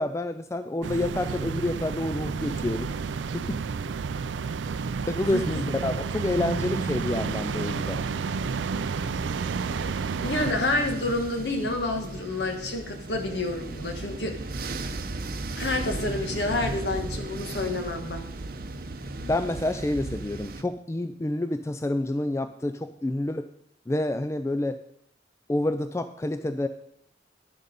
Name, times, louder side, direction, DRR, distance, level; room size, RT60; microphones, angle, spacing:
voice 1, 0.0-2.9 3.3-3.6 5.1-8.0 19.2-23.5 23.9-24.8 25.5-26.7, left 1 dB, 15° left, 10 dB, 0.3 m, -28 dB
sound 1, 0.8-10.5, right 5 dB, 80° right, 0.4 m, -31 dB
voice 2, 5.3-5.6 10.2-14.4 15.6-18.2, left 2 dB, 65° left, 4 dB, 1.5 m, -29 dB
sound 2, 6.3-20.6, right 2 dB, 50° right, 0.7 m, -36 dB
10.5 x 6.6 x 5.3 m, 0.73 s
head